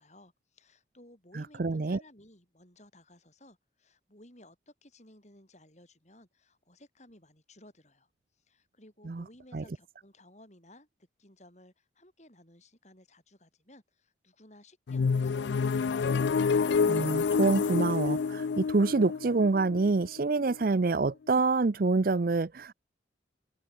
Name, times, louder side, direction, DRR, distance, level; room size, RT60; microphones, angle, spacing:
voice 1, 0.0-10.9 11.2-15.8, left 1 dB, 40° left, 7.9 m, -57 dB
voice 2, 1.6-2.0 9.1-9.2 9.5-9.6 16.9-22.7, right 3 dB, 50° right, 0.5 m, -26 dB
sound 1, 14.9-20.7, left 5 dB, 70° left, 0.4 m, -28 dB
open air
head